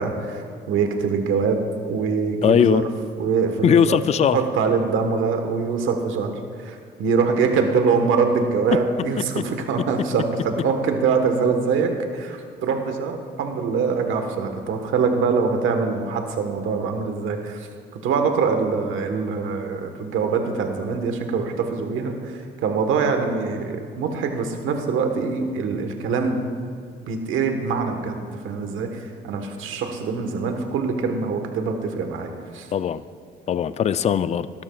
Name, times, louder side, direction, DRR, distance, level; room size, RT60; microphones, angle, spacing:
voice 1, 0.0-2.8 3.2-4.0 4.3-6.3 6.6-17.7 18.0-26.4 27.1-32.7, right 5 dB, 85° right, 5 dB, 1.3 m, -24 dB
voice 2, 2.4-2.8 3.6-4.4 9.4-9.5 32.7-33.0 33.5-34.5, left 8 dB, 35° left, 14 dB, 0.4 m, -19 dB
18.0 x 12.5 x 2.4 m, 2.2 s
cardioid pair, 90°, 20 cm